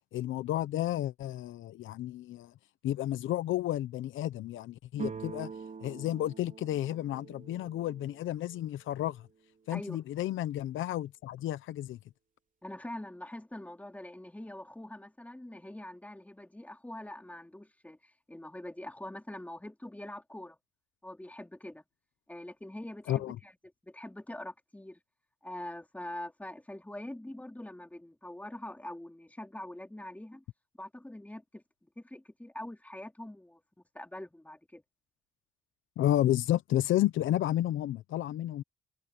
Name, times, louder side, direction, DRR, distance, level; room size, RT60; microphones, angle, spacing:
voice 1, 0.1-2.5 2.8-5.5 5.8-9.3 9.7-12.0 23.1-23.4 36.0-38.6, left 13 dB, 80° left, 0.9 m, -31 dB
sound 1, 4.9-8.6, right 5 dB, 40° right, 4.2 m, -44 dB
voice 2, 12.6-20.6 21.0-21.8 22.3-23.5 23.8-25.0 25.4-30.4 30.8-33.6 33.9-34.8, left 1 dB, 5° left, 3.6 m, -44 dB
cardioid pair, 90°, 20 cm